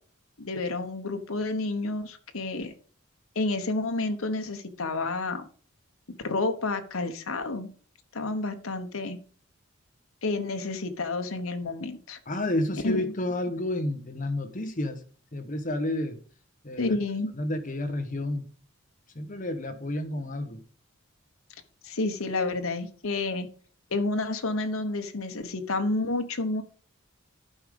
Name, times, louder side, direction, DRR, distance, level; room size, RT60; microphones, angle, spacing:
voice 1, 0.4-2.7 3.3-5.5 6.2-7.7 8.1-9.2 10.2-12.2 12.8-13.0 16.8-17.3 21.8-23.5 23.9-26.6, left 2 dB, 75° left, 1.1 m, -30 dB
voice 2, 12.3-15.0 15.3-16.2 16.6-16.9 17.3-18.4 19.1-20.6, left 1 dB, 40° left, 1.2 m, -30 dB
11.5 x 5.0 x 5.2 m
head